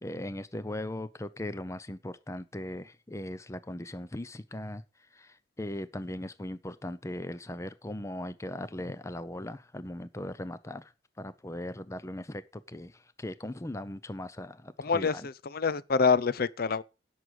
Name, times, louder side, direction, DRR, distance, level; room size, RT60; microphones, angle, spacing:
voice 1, 0.0-4.8 5.1-10.9 11.2-15.3, left 1 dB, 15° left, 0.6 m, -39 dB
voice 2, 14.8-16.8, left 5 dB, 55° left, 0.6 m, -26 dB
11.0 x 7.7 x 4.9 m
head